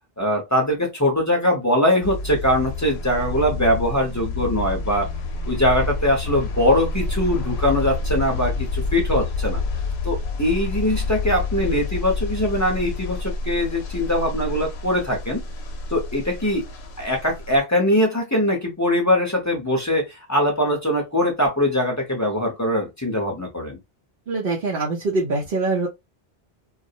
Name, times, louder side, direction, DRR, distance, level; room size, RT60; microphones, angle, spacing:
voice 1, 0.2-5.1 5.5-9.6 10.0-15.4 15.9-16.6 17.0-23.8, left 1 dB, 20° left, 0.7 m, -22 dB
sound 1, 2.0-17.6, left 3 dB, 85° left, 0.8 m, -28 dB
voice 2, 24.3-25.9, right 3 dB, 60° right, 0.7 m, -23 dB
2.3 x 2.0 x 2.6 m
omnidirectional pair, 1.1 m